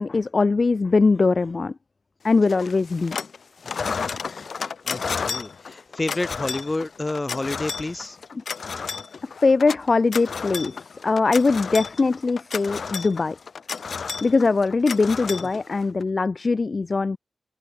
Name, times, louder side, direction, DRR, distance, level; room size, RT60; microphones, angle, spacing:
voice 1, 0.0-1.7 2.2-3.2 9.2-13.4 14.2-17.2, left 4 dB, 40° left, 0.7 m, -21 dB
sound 1, 2.5-3.4 3.6-16.0, left 5 dB, 65° left, 2.3 m, -32 dB
voice 2, 3.6-3.9 4.8-8.2 15.4-15.5, left 2 dB, 20° left, 4.0 m, -30 dB
wide cardioid pair, 165°, 0 cm